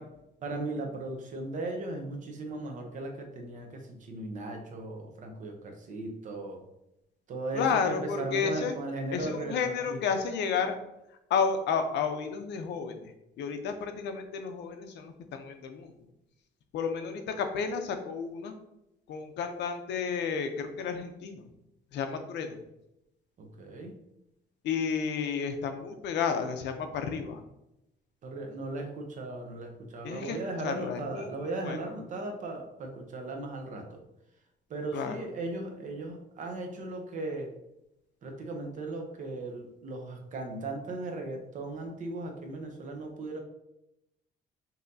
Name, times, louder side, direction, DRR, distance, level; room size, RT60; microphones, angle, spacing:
voice 1, 0.4-6.6 7.3-10.0 23.4-24.0 28.2-34.0 34.7-37.5 38.2-43.4, right 2 dB, 45° right, 3 dB, 0.7 m, -37 dB
voice 2, 7.5-8.7 9.1-10.7 11.3-13.1 13.4-15.9 16.7-18.5 19.1-21.5 21.9-22.6 24.6-27.4 30.0-30.4 30.6-31.8 34.9-35.2, left 6 dB, 80° left, 7 dB, 0.6 m, -31 dB
5.5 x 2.8 x 2.6 m, 0.86 s
cardioid pair, 170°, 18 cm